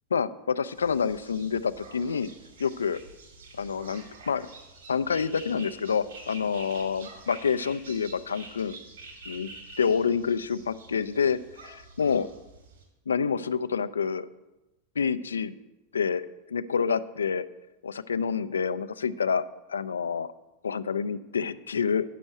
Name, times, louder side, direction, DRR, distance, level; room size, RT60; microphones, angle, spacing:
voice 1, 0.1-2.3 2.6-3.0 3.6-4.5 4.9-8.8 9.3-9.5 9.8-11.4 11.6-12.3 13.1-14.3 15.0-15.5 15.9-17.4 17.8-19.4 19.7-20.3 20.6-22.0, left 6 dB, 70° left, 13 dB, 0.4 m, -28 dB
sound 1, 0.7-12.8, right 2 dB, 65° right, 3.2 m, -47 dB
9.2 x 6.1 x 7.7 m, 1.0 s
figure-of-eight pair, 90°, 0 cm